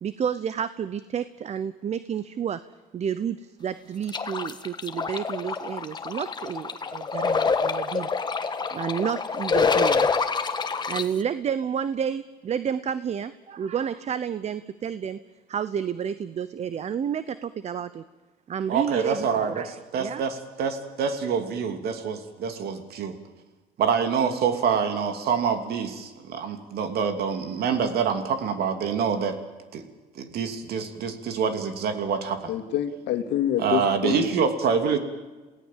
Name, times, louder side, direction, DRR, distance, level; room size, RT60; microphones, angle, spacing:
voice 1, 0.0-2.6 2.9-8.1 8.7-10.1 10.9-15.2 15.5-18.0 18.5-19.3 19.6-19.7 20.0-20.2, right 8 dB, 40° right, 14 dB, 0.8 m, -30 dB
sound 1, 4.1-11.0, left 5 dB, 25° left, 1.4 m, -26 dB
voice 2, 18.7-23.2 23.8-29.4 29.7-29.8 30.1-32.5 33.6-35.0, right 6 dB, 70° right, 7 dB, 2.8 m, -26 dB
voice 3, 32.5-34.2, left 11 dB, 85° left, 7 dB, 2.1 m, -26 dB
28.5 x 17.0 x 7.5 m, 1.2 s
cardioid pair, 110°, 17 cm